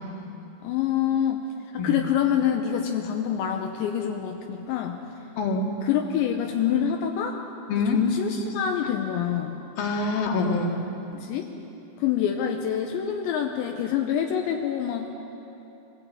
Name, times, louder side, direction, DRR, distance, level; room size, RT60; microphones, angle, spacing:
voice 1, 0.6-1.4 1.7-5.0 5.8-7.4 7.9-9.6 11.1-11.5 12.0-15.1, left 9 dB, 80° left, 3 dB, 3.0 m, -26 dB
voice 2, 5.4-5.7 7.7-8.0 9.8-10.7, left 3 dB, 60° left, 1 dB, 3.3 m, -25 dB
23.5 x 16.5 x 8.6 m, 3.0 s
omnidirectional pair, 5.4 m